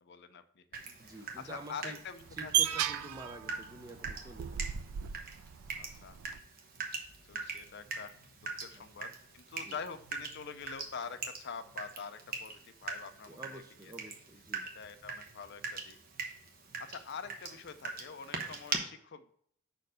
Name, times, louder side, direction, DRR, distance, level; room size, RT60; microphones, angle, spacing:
voice 1, 0.0-2.7 5.7-6.2 7.2-8.1 8.6-13.9 14.7-16.0 16.8-19.3, left 6 dB, 50° left, 10 dB, 0.5 m, -46 dB
Water tap faucet / Drip, 0.7-18.8, right 5 dB, 45° right, 1.0 m, -43 dB
voice 2, 1.0-2.0 2.3-4.6 9.6-9.8 13.3-14.7, right 2 dB, 15° right, 6 dB, 0.4 m, -48 dB
sound 1, 2.2-6.4, right 10 dB, 85° right, 0.4 m, -35 dB
5.4 x 4.4 x 6.2 m, 0.65 s
head